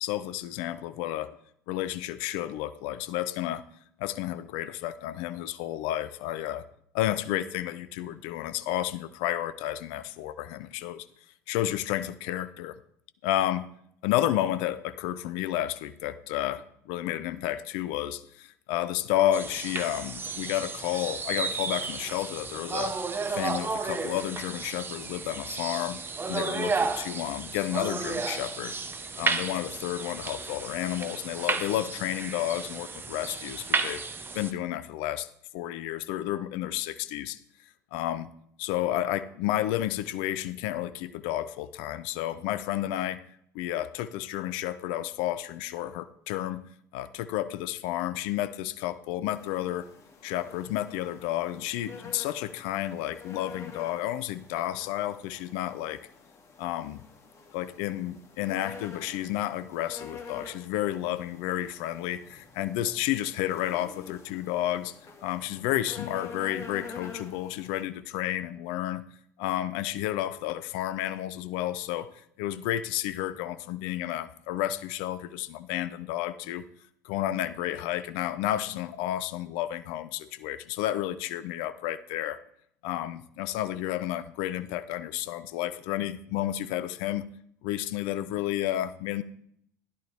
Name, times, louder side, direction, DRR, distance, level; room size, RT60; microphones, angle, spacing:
voice 1, 0.0-1.3 1.7-3.6 4.0-6.6 6.9-11.1 11.5-12.8 13.2-13.7 14.0-22.9 23.3-26.0 26.3-28.7 29.2-34.0 34.3-35.3 35.5-37.4 37.9-38.3 38.6-43.2 43.5-46.6 46.9-49.9 50.2-56.0 56.6-57.0 57.5-64.9 65.2-69.0 69.4-72.1 72.4-76.6 77.0-82.4 82.8-87.2 87.6-89.2, left 13 dB, 60° left, 14 dB, 0.6 m, -31 dB
sound 1, 19.3-34.5, right 4 dB, 25° right, 1.2 m, -33 dB
sound 2, 49.3-67.8, left 5 dB, 35° left, 2.3 m, -47 dB
13.0 x 11.0 x 3.5 m, 0.68 s
hypercardioid pair, 70°, 9 cm